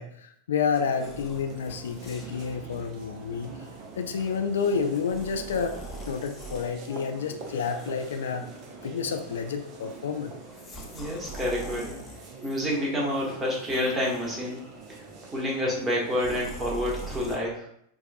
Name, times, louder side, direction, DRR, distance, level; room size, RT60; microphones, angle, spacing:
voice 1, 0.0-3.5 4.0-5.8 6.1-8.5 8.8-10.3, left 6 dB, 65° left, 6 dB, 0.4 m, -29 dB
sound 1, 0.7-17.4, right 4 dB, 40° right, 0.6 m, -44 dB
sound 2, 0.9-2.5 3.2-3.4 5.0-6.7 7.5-8.9 9.2-9.6 10.4-12.7 13.4-14.8 16.1-17.4, right 2 dB, 20° left, 0.8 m, -44 dB
voice 2, 10.9-12.0 12.4-14.6 14.9-15.0 15.3-17.9, left 1 dB, 20° right, -3 dB, 1.2 m, -29 dB
6.1 x 2.5 x 2.5 m, 0.72 s
figure-of-eight pair, 90°, 0 cm